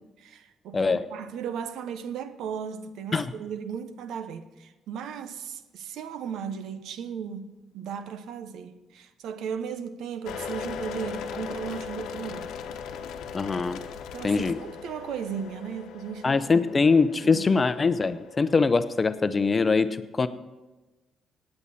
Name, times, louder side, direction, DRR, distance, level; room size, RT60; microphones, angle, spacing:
voice 1, 0.2-12.5 14.1-16.4 17.2-17.5, right 7 dB, 80° right, 0.8 m, -36 dB
sound 1, 10.3-19.1, left 7 dB, 85° left, 1.0 m, -39 dB
voice 2, 13.3-13.8 14.2-14.6 16.2-20.3, left 4 dB, 30° left, 0.7 m, -23 dB
18.0 x 8.8 x 4.2 m
cardioid pair, 90°, 0 cm